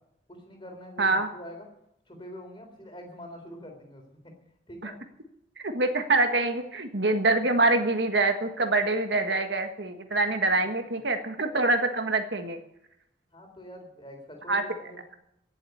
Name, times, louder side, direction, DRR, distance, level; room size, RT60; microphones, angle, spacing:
voice 1, 0.3-1.7 2.1-4.3 4.7-5.0 10.6-11.0 13.3-15.0, equal, 25° left, 3 dB, 3.6 m, -45 dB
voice 2, 1.0-1.3 4.8-4.9 5.6-12.6 14.5-14.6, right 2 dB, 70° right, 6 dB, 1.6 m, -25 dB
17.0 x 7.6 x 8.4 m, 0.79 s
head